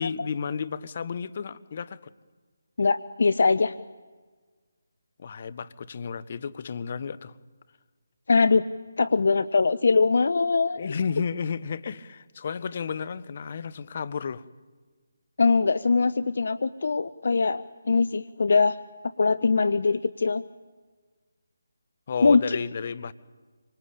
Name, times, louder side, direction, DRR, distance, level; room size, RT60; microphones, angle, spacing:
voice 1, 0.0-2.1 5.2-7.3 10.8-14.4 22.1-23.1, left 6 dB, 40° left, 1.1 m, -32 dB
voice 2, 2.8-3.7 8.3-8.6 9.0-10.9 15.4-18.8 19.2-20.4 22.2-22.6, left 4 dB, 60° left, 0.8 m, -22 dB
26.5 x 25.0 x 8.7 m
figure-of-eight pair, 155°, 0 cm